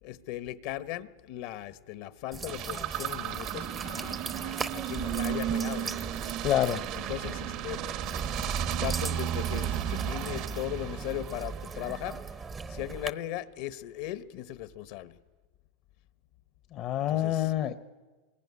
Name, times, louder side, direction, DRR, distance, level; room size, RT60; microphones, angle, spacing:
voice 1, 0.0-6.1 6.9-7.8 8.4-8.5 8.8-15.2 17.1-17.5, left 14 dB, 60° left, 1.2 m, -38 dB
sound 1, 2.3-13.1, right 5 dB, 20° right, 0.7 m, -38 dB
sound 2, 2.5-12.0, right 12 dB, 50° right, 1.0 m, -34 dB
voice 2, 6.4-6.8 16.7-17.7, left 12 dB, 45° left, 0.9 m, -27 dB
26.5 x 21.5 x 9.7 m
supercardioid pair, 135°, 0 cm